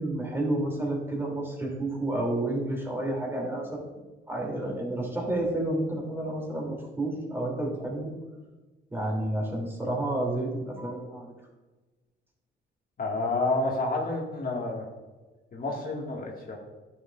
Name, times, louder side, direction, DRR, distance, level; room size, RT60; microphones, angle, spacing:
voice 1, 0.0-3.8 4.3-8.1 8.9-11.3, right 1 dB, 10° right, -1 dB, 2.8 m, -30 dB
voice 2, 13.0-14.9 15.5-16.6, left 2 dB, 45° left, -1 dB, 1.9 m, -29 dB
11.0 x 7.2 x 2.5 m, 1.2 s
cardioid pair, 90°, 20 cm